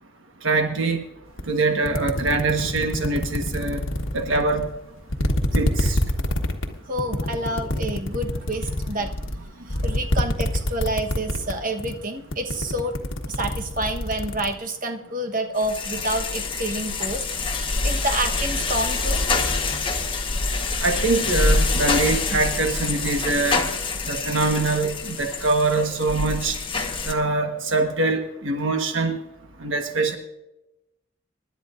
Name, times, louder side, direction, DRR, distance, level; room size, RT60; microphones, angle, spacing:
voice 1, 0.4-1.0 1.5-3.8 4.1-4.7 5.5-6.0 20.8-23.6 24.1-26.6 27.1-29.1 29.6-30.2, right 3 dB, 70° right, 4 dB, 1.3 m, -23 dB
sound 1, 1.4-1.5 1.8-4.7 5.1-11.5 11.8-12.1 12.3-14.5, left 1 dB, 75° left, 1.4 m, -25 dB
voice 2, 6.9-9.1 9.8-12.9 13.3-19.2, right 1 dB, 40° right, 5 dB, 1.2 m, -28 dB
sound 2, 15.6-27.1, left 3 dB, 25° left, 1.2 m, -26 dB
25.0 x 11.5 x 2.6 m, 0.94 s
head